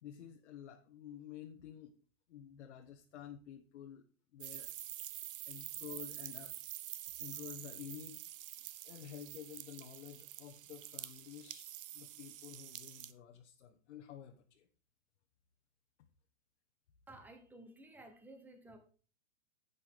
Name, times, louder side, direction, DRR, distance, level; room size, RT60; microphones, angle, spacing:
voice 1, 0.0-2.0 2.3-4.1 4.3-4.7 5.5-6.6 7.2-8.2 8.8-11.7 11.9-14.7, left 9 dB, 60° left, 2 dB, 1.4 m, -51 dB
sound 1, 4.4-13.1, right 13 dB, 45° right, 0.8 m, -47 dB
voice 2, 17.1-18.8, right 1 dB, 5° right, 7 dB, 1.0 m, -54 dB
11.0 x 8.4 x 3.7 m, 0.38 s
supercardioid pair, 165°, 39 cm